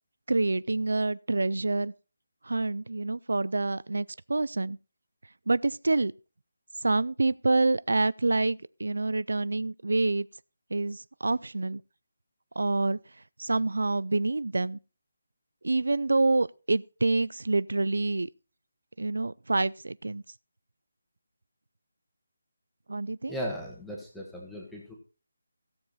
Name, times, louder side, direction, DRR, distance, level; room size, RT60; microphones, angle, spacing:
voice 1, 0.3-1.9 2.4-4.8 5.5-6.1 6.8-10.3 10.7-11.8 12.6-13.0 13.4-14.8 15.6-18.3 19.0-20.2 22.9-23.3, right 2 dB, 90° right, 0.4 m, -27 dB
voice 2, 23.3-24.9, equal, ahead, 1.4 m, -37 dB
16.0 x 7.0 x 4.1 m
figure-of-eight pair, 180°, 0 cm